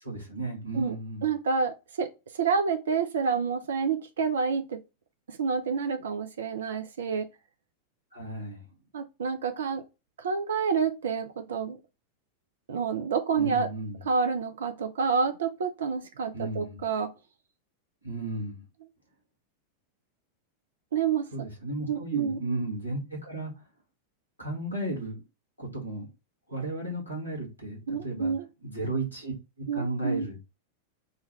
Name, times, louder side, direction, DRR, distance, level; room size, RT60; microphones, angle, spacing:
voice 1, 0.0-1.2 8.1-8.6 13.4-14.0 16.3-16.8 18.0-18.6 21.3-23.5 24.4-25.2 25.6-26.1 26.5-28.3 28.6-29.3 29.7-30.4, right 2 dB, 90° right, 1.4 m, -34 dB
voice 2, 1.2-2.1 2.3-4.8 5.3-7.3 8.9-9.8 10.2-11.8 12.7-13.7 14.1-17.1 20.9-21.3 21.9-22.4 27.9-28.5 29.7-30.3, right 5 dB, 65° right, 0.4 m, -28 dB
3.1 x 2.2 x 3.0 m
figure-of-eight pair, 90°, 0 cm